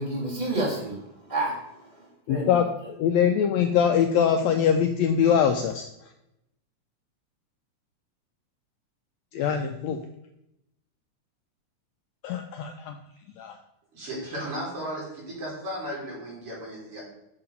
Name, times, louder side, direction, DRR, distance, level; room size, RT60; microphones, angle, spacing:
voice 1, 0.0-2.6, right 2 dB, 15° right, -4 dB, 2.1 m, -30 dB
voice 2, 2.3-5.9 9.3-10.0 12.2-13.0 13.4-13.6, left 8 dB, 80° left, 5 dB, 1.6 m, -23 dB
voice 3, 13.9-17.0, equal, 45° right, -4 dB, 4.0 m, -35 dB
7.2 x 5.7 x 5.3 m, 0.84 s
omnidirectional pair, 3.6 m